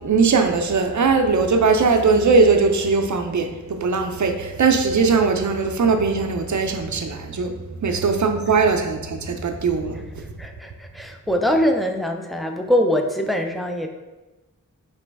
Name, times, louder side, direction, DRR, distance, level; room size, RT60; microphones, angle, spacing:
voice 1, 0.0-7.5 7.8-10.2, right 4 dB, 55° right, 5 dB, 0.5 m, -20 dB
voice 2, 10.4-13.9, equal, ahead, 4 dB, 0.4 m, -23 dB
3.3 x 3.0 x 4.6 m, 1.1 s
wide cardioid pair, 60°, 34 cm